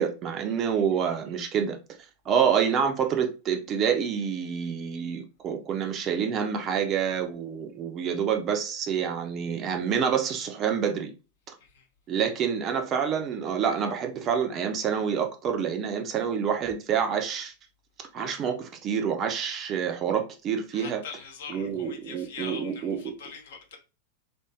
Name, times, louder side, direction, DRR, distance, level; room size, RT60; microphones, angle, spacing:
voice 1, 0.0-1.8 2.3-11.1 12.1-17.5 18.1-21.0 21.5-23.1, right 7 dB, 30° right, 0.5 m, -27 dB
voice 2, 20.7-23.8, left 6 dB, 60° left, 0.9 m, -42 dB
3.4 x 2.6 x 2.6 m
figure-of-eight pair, 90°, 0 cm